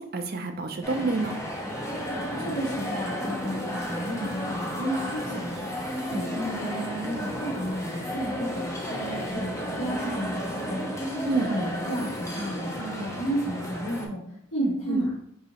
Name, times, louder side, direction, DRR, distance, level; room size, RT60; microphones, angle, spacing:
voice 1, 0.0-1.4 11.3-11.6 14.9-15.1, right 3 dB, 45° right, 5 dB, 0.4 m, -28 dB
sound 1, 0.8-14.1, equal, 15° left, 0.4 m, -33 dB
voice 2, 2.4-5.7 6.1-10.8 11.4-14.2 14.5-15.1, equal, 85° left, -10 dB, 1.5 m, -32 dB
4.7 x 3.0 x 2.8 m, 0.69 s
head